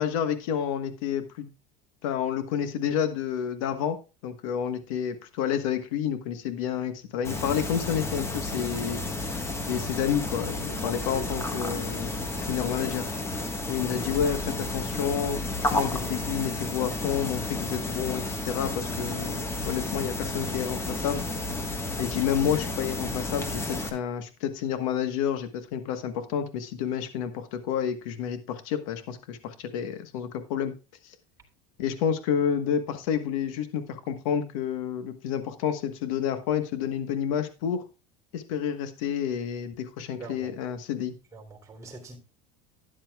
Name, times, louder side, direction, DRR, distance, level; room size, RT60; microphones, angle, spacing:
voice 1, 0.0-1.5 2.0-4.0 4.2-9.0 9.7-12.2 12.5-13.1 13.7-21.2 22.0-30.7 31.0-31.1 31.8-37.8 38.3-41.1, left 8 dB, 80° left, 1.3 m, -29 dB
sound 1, 7.2-23.9, left 2 dB, 15° left, 1.4 m, -32 dB
voice 2, 10.9-11.3 40.2-40.5 41.3-42.2, right 3 dB, 20° right, 3.3 m, -43 dB
12.5 x 10.0 x 2.3 m
supercardioid pair, 140°, 17 cm